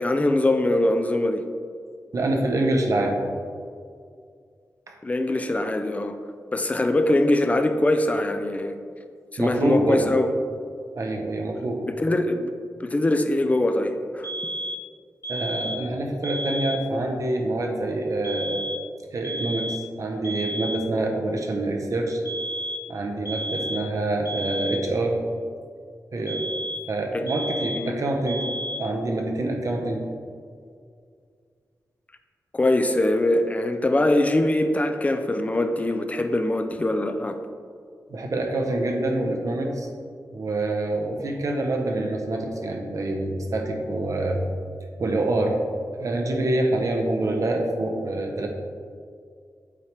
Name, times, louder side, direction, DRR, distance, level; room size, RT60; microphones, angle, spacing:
voice 1, 0.0-1.4 5.0-6.2 6.5-8.7 9.3-10.3 11.9-12.5 12.8-14.3 27.1-27.3 27.7-28.0 32.5-37.4, left 1 dB, 20° left, 7 dB, 0.4 m, -22 dB
voice 2, 2.1-3.2 4.9-5.0 9.4-10.1 10.9-11.9 15.3-18.6 19.1-22.2 22.9-25.2 26.1-26.5 26.9-28.5 28.8-30.1 38.1-39.9 40.3-44.4 45.0-45.6 46.0-48.5, right 2 dB, 55° right, 2 dB, 0.9 m, -26 dB
sound 1, 14.2-14.9 15.2-15.9 16.2-16.9 18.2-18.9 19.2-19.9 20.2-20.9 22.3-22.9 23.3-23.9 24.3-24.9 26.3-26.9 27.3-27.9 28.3-28.9, equal, 65° left, 1.2 m, -32 dB
8.4 x 4.6 x 3.3 m, 2.2 s
wide cardioid pair, 115°, 7 cm